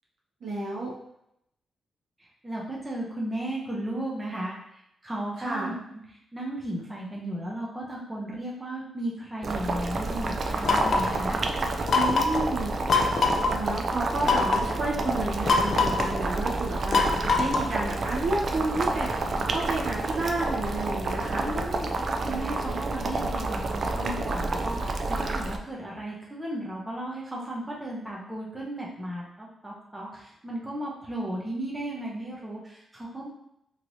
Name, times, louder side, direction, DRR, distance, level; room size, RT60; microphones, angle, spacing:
voice 1, 0.4-0.9 5.4-5.7 11.9-12.7 13.4-17.0 17.4-19.1 19.5-21.5, right 2 dB, 60° right, -4 dB, 0.9 m, -30 dB
voice 2, 2.2-4.5 5.0-5.7 6.3-11.4 21.4-33.3, right 1 dB, 10° right, -4 dB, 0.6 m, -35 dB
Boiling, 9.4-25.6, right 2 dB, 45° right, 0.3 m, -29 dB
sound 1, 10.6-11.2 11.9-12.4 12.9-13.5 14.2-14.7 15.5-16.1 16.9-17.8, left 4 dB, 50° left, 0.3 m, -23 dB
3.0 x 2.8 x 2.6 m, 0.78 s
wide cardioid pair, 130°, 0 cm